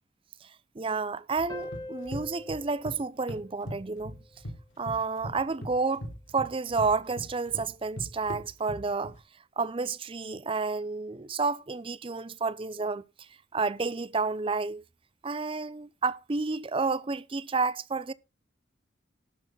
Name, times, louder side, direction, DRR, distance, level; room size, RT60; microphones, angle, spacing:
voice 1, 0.8-4.2 4.8-9.2 9.6-13.0 13.5-14.8 15.2-18.1, right 4 dB, 30° right, 0.5 m, -30 dB
sound 1, 1.4-3.0 3.3-4.6 4.9-9.2, equal, 90° left, 2.9 m, -40 dB
sound 2, 1.5-4.6, left 1 dB, 20° left, 1.7 m, -44 dB
12.0 x 6.9 x 5.3 m
head